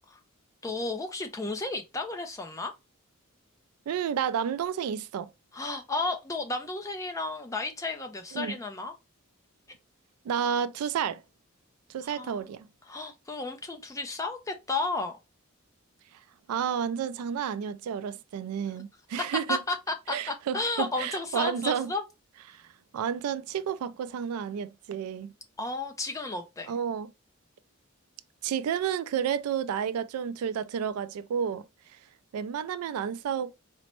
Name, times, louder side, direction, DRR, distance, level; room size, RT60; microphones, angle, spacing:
voice 1, 0.6-2.7 5.5-8.9 12.1-12.4 12.9-15.1 19.5-22.0 25.6-26.7, left 3 dB, 15° left, 0.4 m, -33 dB
voice 2, 3.9-5.3 8.3-8.6 10.2-11.2 11.9-12.7 16.5-19.6 20.1-21.9 22.5-22.6 22.9-25.3 26.7-27.1 28.4-31.6 32.3-33.5, right 8 dB, 90° right, 0.3 m, -31 dB
4.1 x 2.0 x 2.9 m
head